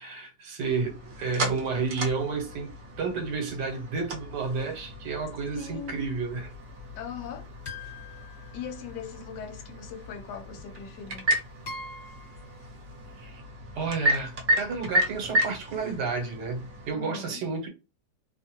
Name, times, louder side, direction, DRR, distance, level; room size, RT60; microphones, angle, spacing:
voice 1, 0.0-6.5 13.2-13.4 13.7-17.7, right 4 dB, 70° right, 1.4 m, -31 dB
sound 1, 0.6-16.9, equal, 55° right, 0.9 m, -33 dB
voice 2, 5.6-6.0 7.0-7.5 8.5-11.3 16.9-17.5, left 6 dB, 75° left, 1.2 m, -40 dB
sound 2, 7.7-9.2 10.6-10.7 11.7-12.5, left 3 dB, 40° left, 1.5 m, -43 dB
3.1 x 2.2 x 2.8 m
omnidirectional pair, 2.0 m